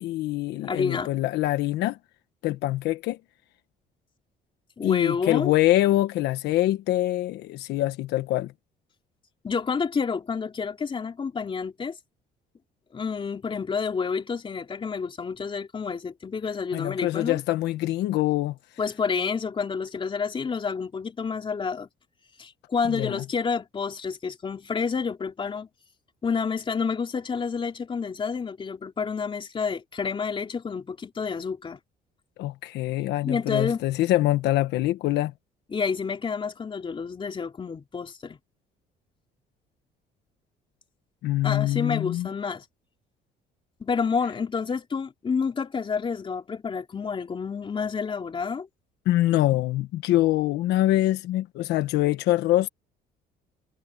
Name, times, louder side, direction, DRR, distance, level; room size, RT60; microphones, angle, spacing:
voice 1, 0.0-2.0 2.4-3.2 4.8-8.5 16.7-18.6 22.8-23.2 32.4-35.3 41.2-42.3 49.0-52.7, left 15 dB, 85° left, 1.3 m, -24 dB
voice 2, 0.6-1.1 4.8-5.5 9.4-12.0 12.9-17.4 18.8-21.9 22.4-25.7 26.2-31.8 33.2-33.8 35.7-38.4 41.4-42.7 43.8-48.7, left 5 dB, 30° left, 3.4 m, -29 dB
cardioid pair, 110°, 17 cm